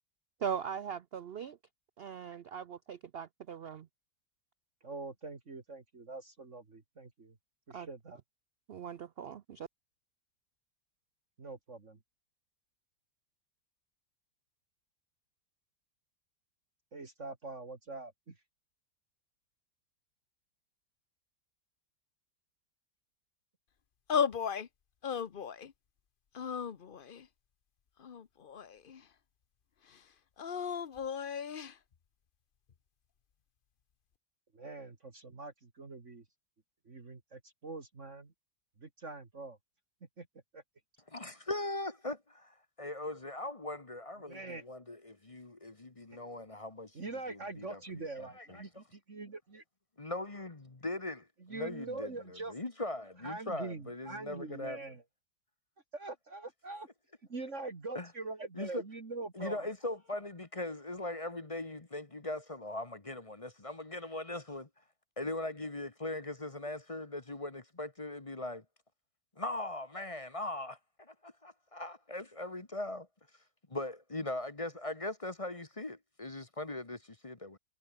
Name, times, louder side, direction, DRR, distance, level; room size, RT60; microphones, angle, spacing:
voice 1, 0.4-1.6 2.0-3.9 7.7-7.9 8.7-9.7, right 7 dB, 75° right, 0.5 m, -40 dB
voice 2, 4.8-7.3 7.7-8.2 11.4-12.0 16.9-18.4 34.5-36.2 36.9-38.3 38.8-39.6 40.2-40.3 40.5-40.6 44.2-44.6 46.9-49.6 51.4-52.5 53.2-55.0 55.9-56.9 57.3-59.7, right 3 dB, 45° right, 2.7 m, -43 dB
sound 1, 24.1-24.7 25.0-25.7 26.3-27.3 28.0-29.0 30.4-31.7, left 7 dB, 40° left, 0.8 m, -35 dB
voice 3, 41.1-48.8 50.0-54.8 57.9-58.1 58.5-58.8 59.3-64.7 65.2-68.6 69.4-73.1 73.7-77.6, left 2 dB, 20° left, 1.2 m, -40 dB
omnidirectional pair, 1.8 m